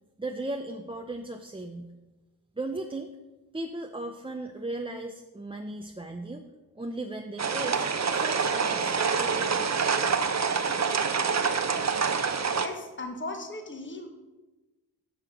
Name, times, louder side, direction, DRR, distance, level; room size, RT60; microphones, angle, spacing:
voice 1, 0.2-1.9 2.6-3.1 3.5-6.5 6.8-7.8 8.1-9.9, right 2 dB, 15° right, 4 dB, 0.6 m, -37 dB
sound 1, 7.4-12.7, right 5 dB, 40° right, 0.8 m, -26 dB
voice 2, 12.6-14.1, left 2 dB, 30° left, 4 dB, 1.4 m, -37 dB
10.0 x 6.5 x 5.1 m, 1.1 s
cardioid pair, 70°, 40 cm